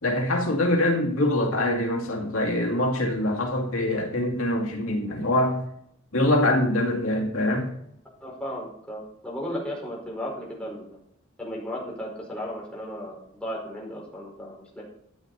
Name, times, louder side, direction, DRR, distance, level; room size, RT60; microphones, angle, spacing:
voice 1, 0.0-5.6 6.1-7.7, left 1 dB, 90° left, 1 dB, 2.3 m, -24 dB
voice 2, 8.2-10.9 11.4-14.8, equal, 5° left, -4 dB, 4.8 m, -35 dB
13.5 x 9.4 x 4.2 m, 0.70 s
head